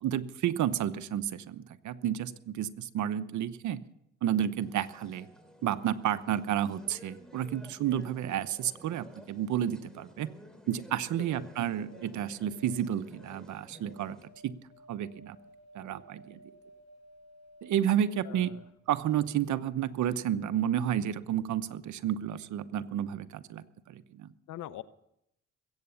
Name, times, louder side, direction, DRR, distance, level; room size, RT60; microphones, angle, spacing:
voice 1, 0.0-3.8 4.2-5.3 5.6-10.3 10.7-14.2 14.4-14.6 14.9-15.4 15.7-16.4 17.6-18.5 18.9-24.3, right 10 dB, 70° right, 12 dB, 1.0 m, -31 dB
sound 1, 4.6-14.3, equal, ahead, 2.8 m, -54 dB
voice 2, 11.4-11.8 18.2-18.6 19.2-19.3 24.5-24.8, left 13 dB, 80° left, 15 dB, 0.8 m, -44 dB
sound 2, 11.8-19.7 19.9-20.1, equal, 60° left, 6.4 m, -57 dB
21.5 x 8.9 x 7.0 m, 0.79 s
cardioid pair, 90°, 30 cm